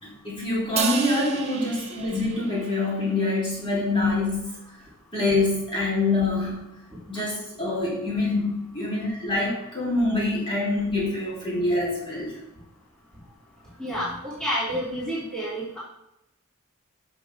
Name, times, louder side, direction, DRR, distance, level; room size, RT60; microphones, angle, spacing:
voice 1, 0.0-4.6 5.1-6.7 7.1-12.4, left 2 dB, 25° left, -7 dB, 3.6 m, -25 dB
Crash cymbal, 0.8-3.1, right 5 dB, 30° right, 1.2 m, -32 dB
voice 2, 13.8-15.8, equal, 5° left, -10 dB, 3.1 m, -29 dB
11.0 x 6.3 x 3.7 m, 0.84 s
head